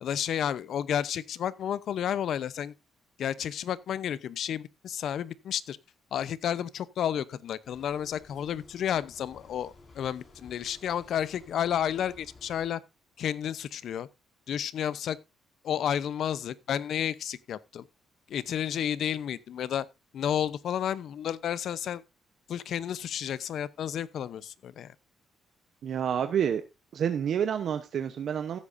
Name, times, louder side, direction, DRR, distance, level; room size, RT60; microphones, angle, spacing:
voice 1, 0.0-2.7 3.2-5.8 6.1-12.8 13.2-14.1 14.5-15.2 15.6-17.9 18.3-19.9 20.1-22.0 22.5-24.9, left 9 dB, 70° left, 0.7 m, -31 dB
sound 1, 7.6-12.7, left 3 dB, 40° left, 5.1 m, -55 dB
voice 2, 25.8-26.6 26.9-28.6, right 8 dB, 65° right, 0.9 m, -28 dB
15.5 x 8.5 x 2.6 m
cardioid pair, 90°, 0 cm